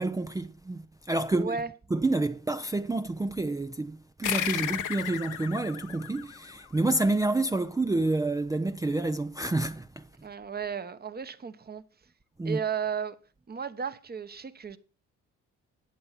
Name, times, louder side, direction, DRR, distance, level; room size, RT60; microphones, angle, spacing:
voice 1, 0.0-1.6 1.9-10.0 12.4-12.6, right 2 dB, 10° right, 0.5 m, -28 dB
voice 2, 1.3-1.7 10.2-11.8 12.4-13.2 13.5-14.8, right 6 dB, 30° right, 1.1 m, -34 dB
sound 1, 4.2-7.2, left 10 dB, 80° left, 1.1 m, -34 dB
11.0 x 8.2 x 5.8 m
cardioid pair, 90°, 30 cm